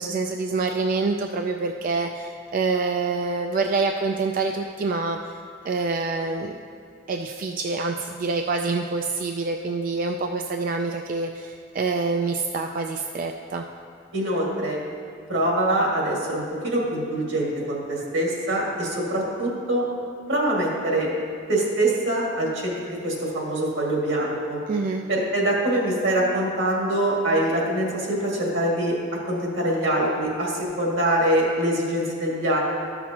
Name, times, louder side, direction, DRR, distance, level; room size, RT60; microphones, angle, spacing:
voice 1, 0.0-5.4 5.6-6.6 7.1-13.6 24.7-25.0, right 3 dB, 45° right, 4 dB, 0.3 m, -26 dB
voice 2, 14.1-14.8 15.3-19.9 20.3-21.1 21.5-24.6 25.1-29.0 29.3-32.6, right 1 dB, 80° right, -3 dB, 2.0 m, -24 dB
13.0 x 6.0 x 2.9 m, 2.4 s
head